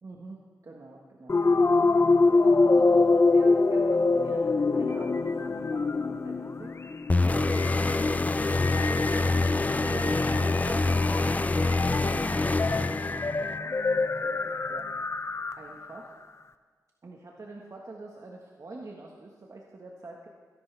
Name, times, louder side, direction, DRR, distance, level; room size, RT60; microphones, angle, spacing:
voice 1, 0.0-1.4 1.8-6.8 7.2-8.3 9.2-16.1 17.0-20.3, right 2 dB, 55° right, -1 dB, 1.5 m, -45 dB
sound 1, 1.3-15.9, left 3 dB, 45° left, 0.7 m, -26 dB
sound 2, 7.1-13.6, left 2 dB, 20° left, 0.4 m, -26 dB
25.5 x 11.0 x 3.4 m, 1.5 s
cardioid pair, 65°, 7 cm